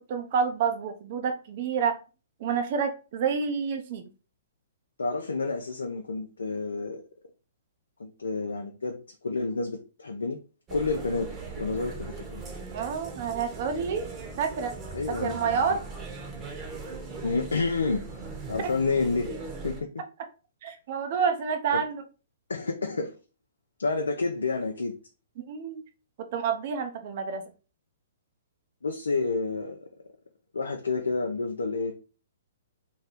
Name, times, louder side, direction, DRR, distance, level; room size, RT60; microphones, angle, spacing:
voice 1, 0.0-2.0 2.4-4.1 12.7-14.7 15.1-15.8 18.6-18.7 20.6-22.0 25.5-25.8 26.2-27.5, right 6 dB, 50° right, 0.6 m, -29 dB
voice 2, 5.0-7.0 8.0-10.4 10.7-11.3 11.6-12.4 14.9-15.8 17.2-18.0 18.5-19.4 19.6-19.9 21.7-21.8 22.5-23.1 23.8-25.0 28.8-29.9 30.5-31.9, left 3 dB, 85° left, 0.5 m, -29 dB
sound 1, 10.7-19.8, right 4 dB, 25° right, 0.9 m, -39 dB
3.1 x 2.2 x 4.0 m
hypercardioid pair, 125°, 0 cm